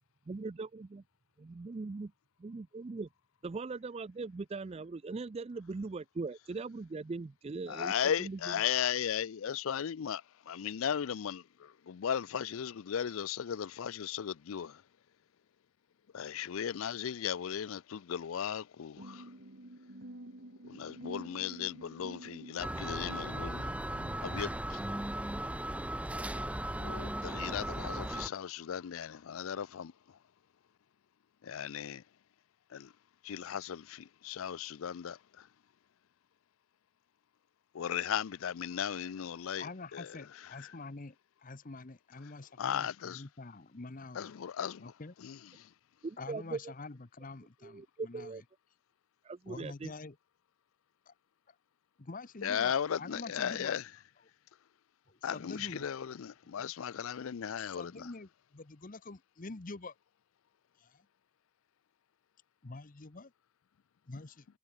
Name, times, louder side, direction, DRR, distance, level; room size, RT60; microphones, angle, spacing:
voice 1, 0.3-1.0 1.4-2.1 2.4-3.1 3.4-8.5 46.0-46.7 47.6-48.4 49.2-49.9, right 3 dB, 30° right, 0.4 m, -40 dB
voice 2, 7.7-14.8 16.1-19.3 20.6-23.7 24.2-24.8 26.8-30.2 31.4-32.0 32.7-32.9 33.2-35.5 37.7-40.8 42.6-43.2 44.1-44.9 45.2-45.7 52.4-53.9 55.2-58.1, left 8 dB, 65° left, 0.4 m, -36 dB
sound 1, 19.0-24.6, right 1 dB, 55° right, 2.6 m, -49 dB
sound 2, 22.6-28.3, right 1 dB, 5° right, 0.7 m, -37 dB
voice 3, 39.6-41.2 41.4-44.3 44.8-45.1 46.2-48.3 49.5-50.1 51.1-51.2 51.5-51.6 52.0-53.8 55.1-55.9 57.8-59.9 60.8-61.0 62.6-63.3 64.1-64.5, left 3 dB, 40° left, 0.9 m, -46 dB
head